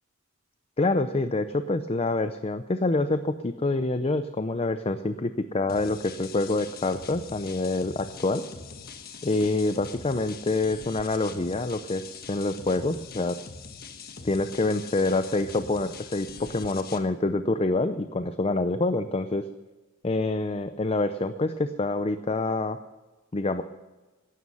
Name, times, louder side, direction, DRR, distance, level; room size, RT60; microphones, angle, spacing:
voice 1, 0.8-8.4 9.2-13.4 14.2-19.5 20.0-22.8 23.3-23.6, left 2 dB, 30° left, 10 dB, 0.5 m, -26 dB
sound 1, 5.7-17.0, left 5 dB, 45° left, 1.4 m, -43 dB
17.0 x 12.5 x 5.5 m, 1.2 s
head